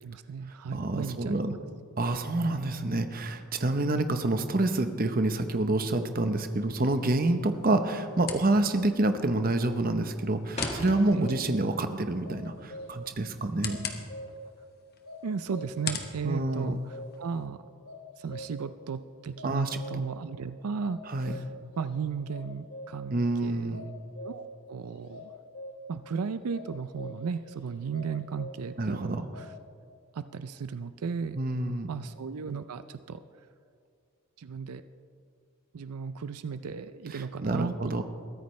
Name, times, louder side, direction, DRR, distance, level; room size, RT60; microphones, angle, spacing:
voice 1, 0.0-1.6 11.1-11.3 15.2-16.8 17.2-17.6 18.2-21.0 21.8-23.9 24.2-25.3 25.9-29.5 30.2-31.4 31.9-33.2 34.4-34.8 35.7-38.0, right 5 dB, 85° right, 12 dB, 0.5 m, -35 dB
voice 2, 0.7-1.5 2.0-13.8 16.2-16.8 19.4-19.8 21.1-21.4 23.1-23.8 28.8-29.2 31.3-31.9 37.1-38.0, right 2 dB, 40° right, 8 dB, 0.8 m, -28 dB
sound 1, 6.5-17.4, left 6 dB, 45° left, 1.2 m, -43 dB
sound 2, 10.0-11.8 12.1-13.6, left 1 dB, 30° left, 1.7 m, -39 dB
sound 3, 10.8-11.7 12.2-13.2 13.7-14.6 15.0-16.0 16.5-17.4 17.8-18.8 19.3-20.3 20.8-21.9 22.3-23.2 23.7-24.6 25.1-26.0 26.5-27.4 27.9-28.9 29.3-29.5, equal, 60° left, 2.8 m, -44 dB
22.0 x 14.5 x 3.2 m, 2.3 s
head